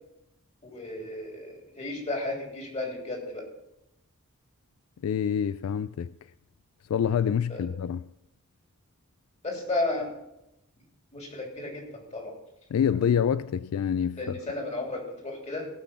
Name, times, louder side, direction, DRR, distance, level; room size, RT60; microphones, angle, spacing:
voice 1, 0.6-3.4 7.5-7.7 9.4-10.1 11.1-12.3 14.2-15.7, left 2 dB, 30° left, 3.1 m, -33 dB
voice 2, 5.0-6.1 6.9-8.0 12.7-14.2, left 8 dB, 75° left, 0.3 m, -26 dB
17.0 x 6.1 x 5.8 m
head